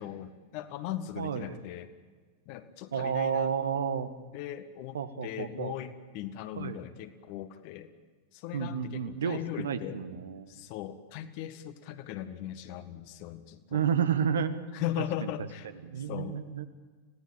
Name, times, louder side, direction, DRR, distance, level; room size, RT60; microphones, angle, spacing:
voice 1, 0.0-1.9 2.4-3.5 4.3-7.9 8.3-10.0 10.5-13.8 14.7-15.7 16.1-16.4, left 12 dB, 45° left, 10 dB, 1.8 m, -39 dB
voice 2, 1.2-1.6 2.9-4.2 4.9-5.7 6.6-6.8 8.5-10.5 13.7-14.7 15.2-15.3 15.8-16.7, right 7 dB, 65° right, 11 dB, 1.6 m, -31 dB
26.0 x 17.5 x 8.9 m, 1.5 s
figure-of-eight pair, 90°, 0 cm